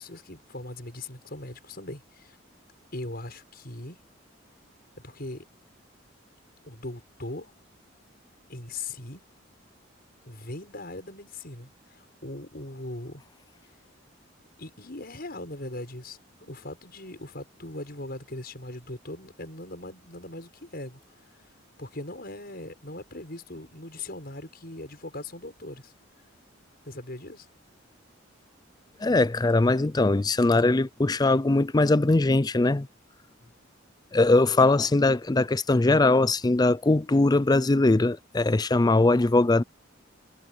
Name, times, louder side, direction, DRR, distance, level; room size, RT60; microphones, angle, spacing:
voice 1, 0.0-2.4 2.9-4.0 5.0-5.4 6.6-7.5 8.5-9.2 10.3-13.2 14.6-21.5 21.8-25.9 26.8-27.5, left 2 dB, 50° left, 7.0 m, -40 dB
voice 2, 29.0-32.9 34.1-39.6, left 2 dB, 20° left, 0.4 m, -21 dB
head